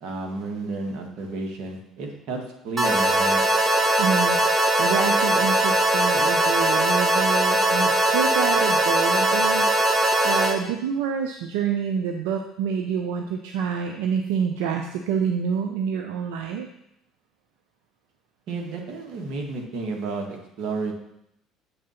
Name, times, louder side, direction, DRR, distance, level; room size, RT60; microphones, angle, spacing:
voice 1, 0.0-3.4 18.5-20.9, right 3 dB, 65° right, 2 dB, 1.6 m, -31 dB
sound 1, 2.8-10.5, right 1 dB, 30° right, 1.2 m, -20 dB
voice 2, 4.0-16.7, right 7 dB, 90° right, 5 dB, 0.5 m, -27 dB
8.0 x 3.8 x 5.6 m, 0.80 s
supercardioid pair, 100°, 0 cm